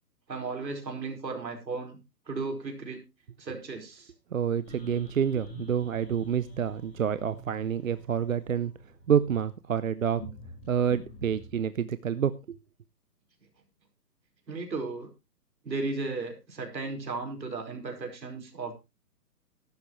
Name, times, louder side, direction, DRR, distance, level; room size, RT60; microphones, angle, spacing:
voice 1, 0.3-2.0 2.3-3.0 3.4-4.1 14.5-15.1 15.6-18.7, right 3 dB, 85° right, 4 dB, 4.9 m, -35 dB
voice 2, 4.3-8.7 9.1-10.2 10.7-12.6, right 8 dB, 55° right, 14 dB, 0.6 m, -28 dB
sound 1, 4.6-11.6, right 1 dB, 10° left, 4.6 m, -47 dB
13.5 x 12.0 x 3.1 m, 0.26 s
hypercardioid pair, 170°, 50 cm